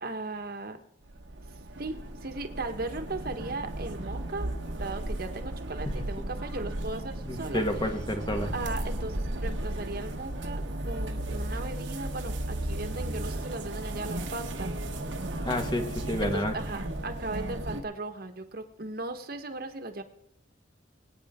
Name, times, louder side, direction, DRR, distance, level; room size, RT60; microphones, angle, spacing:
voice 1, 0.0-0.8 1.8-4.5 4.8-7.6 8.5-14.7 16.2-20.0, right 2 dB, 55° right, 6 dB, 1.3 m, -37 dB
sound 1, 1.1-17.8, right 1 dB, 85° right, 1.4 m, -35 dB
voice 2, 5.9-6.2 7.3-8.5 15.5-16.5, left 1 dB, 25° left, 5 dB, 1.4 m, -30 dB
23.0 x 9.2 x 3.7 m, 0.81 s
head